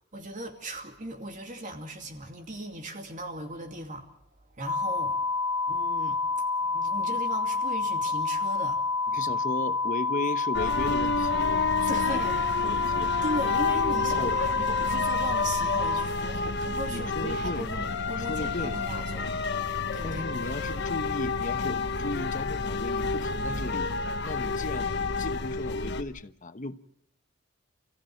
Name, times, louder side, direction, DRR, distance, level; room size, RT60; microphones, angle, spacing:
voice 1, 0.1-4.1 4.5-5.2 5.6-9.3 11.9-12.5 13.2-20.3, right 1 dB, 40° right, 2.6 m, -38 dB
sound 1, 4.7-16.1, left 4 dB, 80° left, 0.9 m, -28 dB
voice 2, 9.1-13.1 14.1-14.4 16.9-17.7 18.2-18.8 20.0-23.9 24.2-26.8, left 2 dB, 40° left, 1.1 m, -36 dB
sound 2, 10.5-26.0, left 4 dB, 60° left, 1.2 m, -30 dB
29.0 x 16.0 x 7.8 m
head